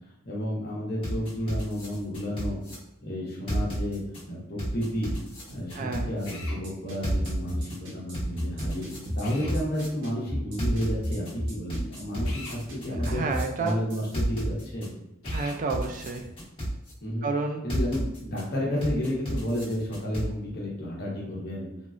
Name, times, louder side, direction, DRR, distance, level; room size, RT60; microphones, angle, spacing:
voice 1, 0.2-2.6 3.0-4.0 4.3-5.1 5.5-13.2 13.6-14.9 17.0-17.3 17.6-21.7, equal, 50° left, -4 dB, 1.0 m, -31 dB
sound 1, 1.0-2.7 3.5-4.2 4.6-6.3 7.0-7.8 8.1-9.9 10.6-11.3 11.7-13.4 14.1-14.9 15.3-16.9 17.7-18.4 18.8-20.3, equal, 25° left, 1.1 m, -33 dB
voice 2, 5.7-6.1 13.1-13.8 15.3-16.3 17.2-17.6, right 4 dB, 40° right, 4 dB, 0.3 m, -30 dB
Drill, 6.2-6.6 9.2-9.6 12.2-12.6 15.2-15.6, left 3 dB, 85° left, 0.8 m, -42 dB
sound 2, 6.4-14.1, equal, 60° right, 0.8 m, -33 dB
3.5 x 2.2 x 2.5 m, 0.88 s
head